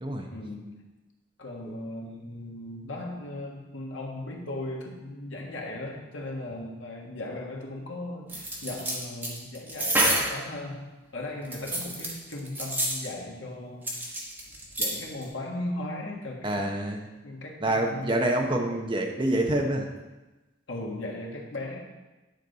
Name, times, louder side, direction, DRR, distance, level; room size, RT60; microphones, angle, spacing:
voice 1, 0.3-0.9 1.4-14.2 14.8-16.6 17.2-18.2 20.7-21.8, left 1 dB, 80° left, 0 dB, 1.5 m, -37 dB
sound 1, 8.3-10.4 11.4-13.1 13.9-14.9 15.2-15.3, right 1 dB, 10° right, 1.1 m, -28 dB
voice 2, 16.4-17.1 17.6-19.9, right 1 dB, 25° right, 2 dB, 0.9 m, -27 dB
9.8 x 5.2 x 4.0 m, 1.1 s
head